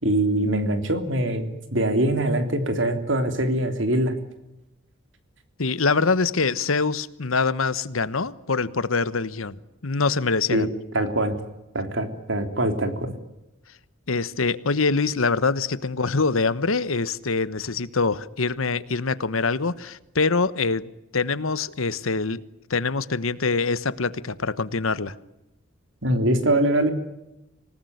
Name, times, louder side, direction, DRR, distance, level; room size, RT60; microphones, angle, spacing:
voice 1, 0.0-4.1 10.5-10.7 10.9-11.4 11.7-13.1 26.0-26.9, right 1 dB, 65° right, 3.3 m, -23 dB
voice 2, 5.6-9.6 9.8-10.7 14.1-20.9 21.1-22.4 22.7-25.1, left 4 dB, 85° left, 1.2 m, -24 dB
26.0 x 19.0 x 9.5 m
head